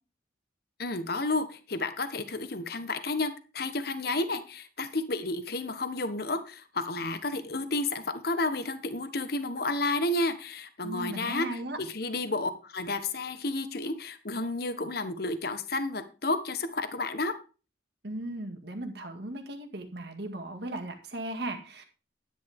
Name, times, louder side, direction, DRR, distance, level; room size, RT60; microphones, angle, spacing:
voice 1, 0.8-17.4, left 2 dB, 55° left, 11 dB, 1.1 m, -31 dB
voice 2, 10.8-11.8 18.0-21.8, right 1 dB, 60° right, 5 dB, 1.9 m, -37 dB
10.5 x 10.0 x 3.6 m, 0.34 s
head